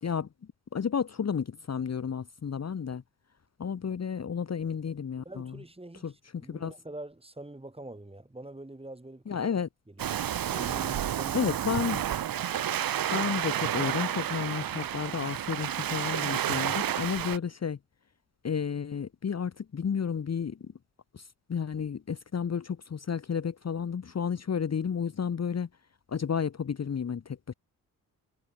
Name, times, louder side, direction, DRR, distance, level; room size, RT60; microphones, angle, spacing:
voice 1, 0.7-3.0 3.6-5.6 6.0-6.7 9.3-9.7 11.3-12.0 13.1-17.8 18.4-20.7 21.1-25.7 26.1-27.5, left 7 dB, 35° left, 1.3 m, -32 dB
voice 2, 5.2-6.1 6.4-9.5 9.9-10.1 10.4-11.4 17.2-17.3, right 1 dB, 10° right, 4.0 m, -44 dB
Waves surf, 10.0-17.4, right 10 dB, 50° right, 1.2 m, -30 dB
hypercardioid pair, 45°, 45 cm